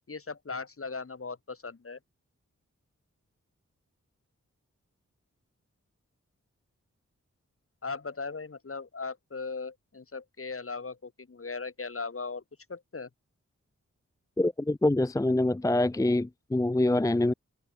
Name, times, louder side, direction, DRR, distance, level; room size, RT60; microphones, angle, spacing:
voice 1, 0.1-2.0 7.8-12.4 12.7-13.1, left 4 dB, 50° left, 2.1 m, -38 dB
voice 2, 14.4-17.3, left 2 dB, 10° left, 0.5 m, -25 dB
cardioid pair, 55°, 30 cm